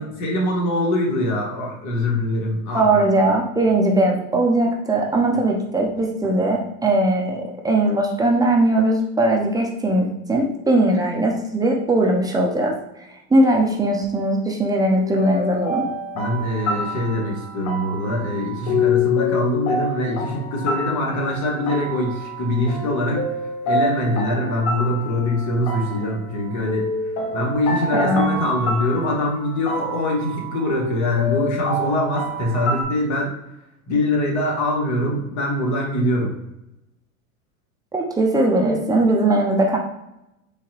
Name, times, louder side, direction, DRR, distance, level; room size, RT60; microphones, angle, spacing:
voice 1, 0.0-3.0 16.1-23.3 23.6-33.3 33.9-36.3, left 1 dB, 40° left, -1 dB, 1.3 m, -23 dB
voice 2, 2.7-12.8 13.3-15.8 27.9-28.3 37.9-39.8, right 1 dB, 10° right, 0 dB, 0.4 m, -19 dB
sound 1, 15.0-32.8, left 2 dB, 60° left, 1.0 m, -27 dB
3.8 x 2.8 x 2.8 m, 0.89 s
hypercardioid pair, 105°, 42 cm